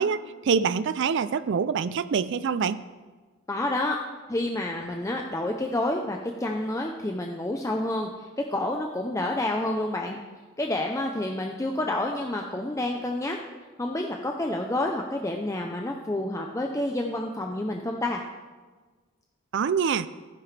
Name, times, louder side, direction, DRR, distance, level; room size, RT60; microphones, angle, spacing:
voice 1, 0.0-2.8 19.5-20.1, right 6 dB, 55° right, 14 dB, 0.4 m, -25 dB
voice 2, 3.5-4.0 4.3-10.2 10.6-13.4 13.8-18.2, left 1 dB, 15° left, 2 dB, 0.6 m, -29 dB
15.5 x 9.8 x 3.3 m, 1.4 s
head